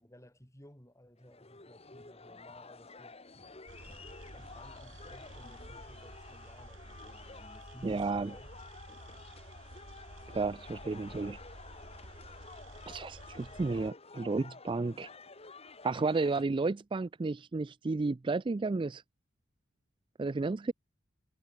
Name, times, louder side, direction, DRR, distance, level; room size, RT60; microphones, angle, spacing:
voice 1, 0.0-3.2 3.9-8.5 9.0-9.1, equal, 15° left, 7.0 m, -56 dB
sound 1, 1.2-16.4, left 4 dB, 30° left, 2.8 m, -51 dB
sound 2, 3.7-13.9, right 1 dB, 85° right, 5.6 m, -51 dB
voice 2, 7.8-8.3 10.3-11.4 12.9-15.1 15.8-19.0 20.2-20.7, right 3 dB, 25° right, 0.4 m, -32 dB
head